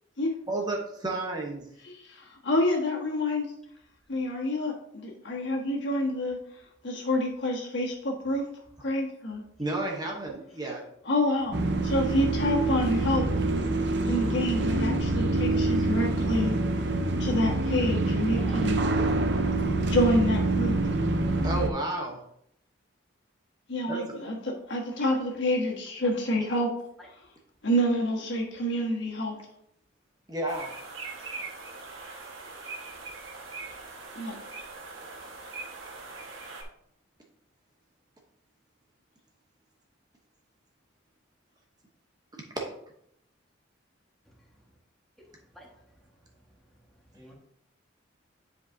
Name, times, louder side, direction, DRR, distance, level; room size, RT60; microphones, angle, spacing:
voice 1, 0.5-1.7 9.6-10.8 15.8-15.9 21.4-22.2 23.9-24.0 30.3-30.7 42.6-42.7, right 2 dB, 20° right, 1 dB, 0.9 m, -31 dB
voice 2, 1.8-3.5 4.1-6.4 6.8-8.5 8.8-9.4 11.0-11.6 11.8-13.3 14.0-16.6 17.2-18.8 19.9-20.8 23.7-26.8 27.6-29.4 34.1-34.3, left 1 dB, 65° left, -1 dB, 1.6 m, -28 dB
sound 1, 11.5-21.7, right 2 dB, 60° right, 0.7 m, -26 dB
voice 3, 18.1-18.6 45.5-45.7 47.1-47.3, equal, ahead, -3 dB, 1.5 m, -47 dB
sound 2, 30.5-36.6, right 3 dB, 85° right, 1.5 m, -41 dB
10.0 x 5.1 x 2.7 m, 0.72 s
head